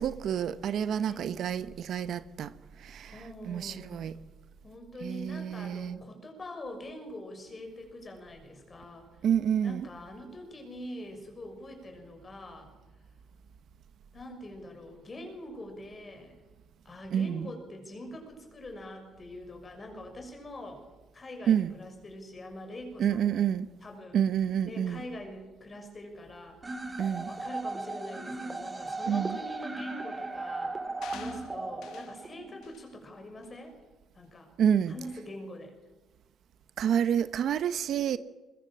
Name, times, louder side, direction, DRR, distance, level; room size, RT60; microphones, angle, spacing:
voice 1, 0.0-2.5 2.8-3.1 3.5-4.1 5.0-6.0 9.2-9.9 17.1-17.5 21.5-21.7 23.0-23.7 24.1-25.0 27.0-27.3 29.1-29.4 34.6-34.9 36.8-38.2, right 8 dB, 65° right, 0.9 m, -28 dB
voice 2, 1.1-1.4 3.1-4.0 4.6-9.1 9.6-12.7 14.1-16.3 16.8-20.8 21.1-23.5 23.8-24.2 24.6-26.8 27.3-30.8 31.1-33.8 34.1-34.5 34.9-35.7, left 1 dB, 30° left, 6.4 m, -44 dB
sound 1, 26.6-32.6, right 2 dB, 20° right, 2.9 m, -37 dB
sound 2, 31.0-32.2 32.6-32.9 33.4-33.6, left 10 dB, 80° left, 1.8 m, -48 dB
21.5 x 21.0 x 7.5 m
cardioid pair, 115°, 0 cm